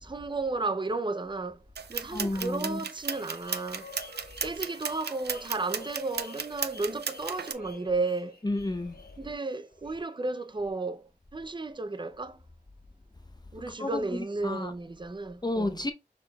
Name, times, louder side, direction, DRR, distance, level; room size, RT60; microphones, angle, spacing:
voice 1, 0.0-1.6 1.9-3.9 4.4-8.4 9.2-12.4 13.5-15.8, right 3 dB, 30° right, 0.5 m, -33 dB
sound 1, 1.8-7.5, right 6 dB, 85° right, 0.4 m, -36 dB
voice 2, 2.1-2.8 8.4-9.0 13.8-14.7 15.4-15.9, left 2 dB, 25° left, 0.6 m, -31 dB
sound 2, 3.0-10.9, left 2 dB, 70° left, 1.1 m, -49 dB
6.4 x 3.5 x 2.2 m
wide cardioid pair, 55°, 17 cm